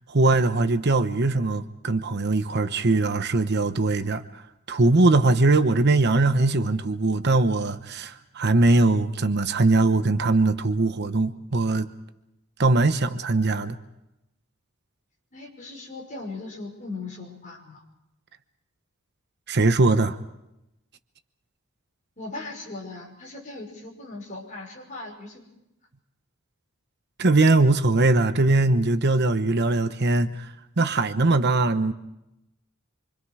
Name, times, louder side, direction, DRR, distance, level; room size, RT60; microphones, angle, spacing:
voice 1, 0.1-4.4 4.7-11.9 12.6-13.8 19.5-20.2 27.2-31.9, right 2 dB, 50° right, 1.0 m, -21 dB
voice 2, 15.3-17.8 22.2-25.4, left 3 dB, 35° left, 5.9 m, -38 dB
27.0 x 25.5 x 4.9 m
head